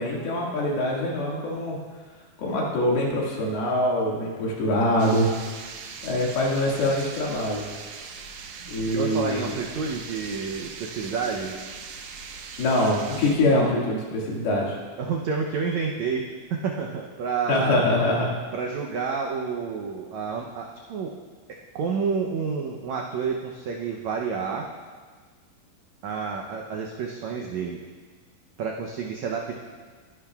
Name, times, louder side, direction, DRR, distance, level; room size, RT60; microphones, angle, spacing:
voice 1, 0.0-1.8 2.4-5.3 6.0-7.7 8.7-9.5 12.6-14.8 17.5-18.3, left 1 dB, 90° left, -3 dB, 4.0 m, -24 dB
sound 1, 5.0-13.4, right 5 dB, 75° right, 1.8 m, -40 dB
voice 2, 8.8-11.6 15.0-17.9 18.5-21.2 21.5-24.7 26.0-27.8 28.6-29.6, right 5 dB, 90° right, 0 dB, 1.5 m, -29 dB
21.0 x 11.0 x 2.4 m, 1.5 s
omnidirectional pair, 4.3 m